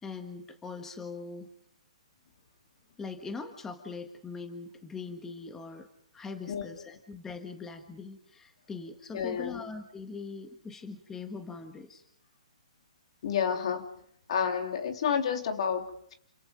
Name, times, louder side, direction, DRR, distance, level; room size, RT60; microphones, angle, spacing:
voice 1, 0.0-1.5 3.0-5.9 6.1-12.0, left 4 dB, 10° left, 7 dB, 1.5 m, -41 dB
voice 2, 9.1-9.6 13.2-13.9 14.3-16.1, left 7 dB, 55° left, 6 dB, 3.1 m, -30 dB
28.5 x 26.5 x 5.3 m, 0.64 s
hypercardioid pair, 140°, 4 cm